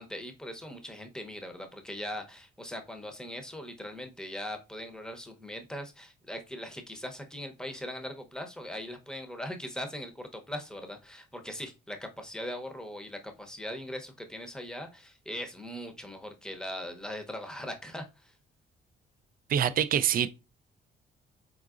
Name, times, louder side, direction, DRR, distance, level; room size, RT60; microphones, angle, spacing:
voice 1, 0.0-18.3, left 1 dB, 5° left, 0.8 m, -40 dB
voice 2, 19.5-20.3, right 9 dB, 45° right, 0.4 m, -25 dB
3.8 x 3.7 x 2.4 m
cardioid pair, 90°, 20 cm